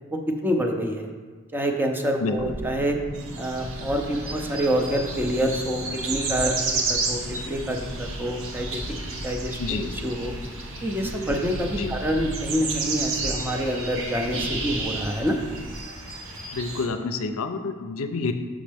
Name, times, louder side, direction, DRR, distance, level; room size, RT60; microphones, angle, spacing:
voice 1, 0.4-1.1 1.5-3.0 3.4-8.8 9.2-10.3 10.8-15.4, equal, 10° right, 2 dB, 0.6 m, -27 dB
voice 2, 2.2-2.5 9.6-9.9 11.8-11.9 16.5-18.3, left 4 dB, 70° left, 8 dB, 0.5 m, -28 dB
sound 1, 2.4-15.8, equal, 45° right, 1.6 m, -38 dB
sound 2, 3.1-16.9, right 3 dB, 65° right, 1.0 m, -33 dB
6.3 x 6.2 x 3.4 m, 1.4 s
head